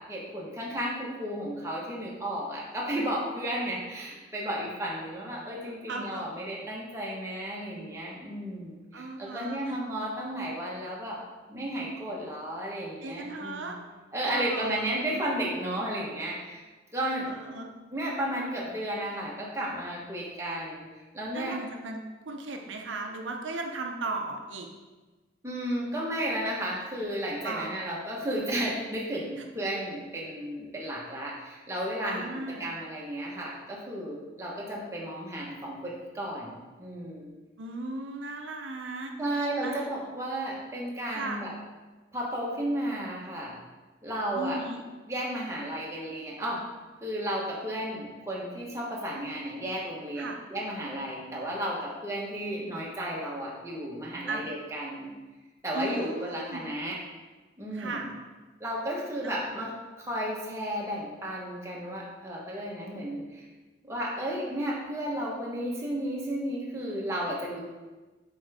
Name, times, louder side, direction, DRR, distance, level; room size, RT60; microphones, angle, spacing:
voice 1, 0.0-11.2 11.5-13.7 14.1-16.6 16.9-17.3 17.9-20.9 21.1-21.6 25.4-37.3 39.2-41.5 42.1-43.5 44.0-44.6 45.1-46.6 47.0-55.1 55.6-57.0 57.6-58.1 58.6-59.7 60.0-63.5 63.8-67.6, right 1 dB, 15° right, -4 dB, 1.1 m, -33 dB
voice 2, 5.9-6.2 8.9-9.8 13.0-13.8 14.2-15.0 17.3-17.7 21.3-24.7 27.4-27.8 32.0-32.7 37.6-39.9 41.1-41.4 44.3-44.8 50.2-50.4 54.3-54.5 55.7-56.6 57.7-58.1 59.2-59.4, right 3 dB, 85° right, 2 dB, 0.7 m, -36 dB
7.2 x 4.6 x 3.5 m, 1.2 s
head